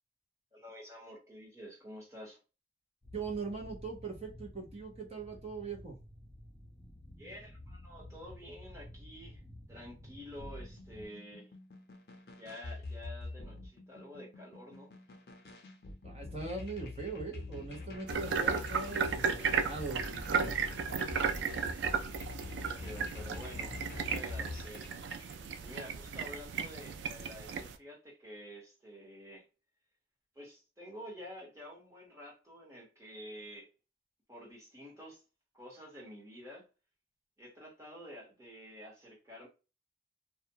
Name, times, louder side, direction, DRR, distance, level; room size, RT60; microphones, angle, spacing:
voice 1, 0.5-2.4 7.2-9.4 9.7-11.5 12.4-14.9 22.6-24.9 25.6-29.4 30.3-33.7 34.3-35.2 35.5-36.7 37.4-39.5, equal, 15° right, 1.2 m, -49 dB
sound 1, 3.0-11.0, left 1 dB, 15° left, 0.6 m, -52 dB
voice 2, 3.1-6.0 16.0-20.5, right 4 dB, 35° right, 0.8 m, -41 dB
sound 2, 10.4-25.3, left 2 dB, 65° left, 0.6 m, -45 dB
sound 3, 18.1-27.8, right 6 dB, 90° right, 0.3 m, -35 dB
2.4 x 2.2 x 2.8 m
head